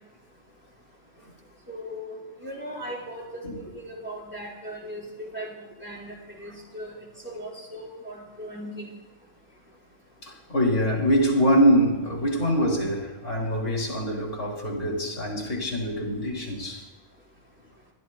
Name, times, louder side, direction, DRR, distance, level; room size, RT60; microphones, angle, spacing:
voice 1, 1.7-5.5 5.8-6.9 7.2-8.9, equal, 10° right, 4.7 m, -38 dB
voice 2, 10.2-16.8, equal, 80° left, 3.5 m, -24 dB
28.0 x 12.0 x 2.2 m
omnidirectional pair, 1.3 m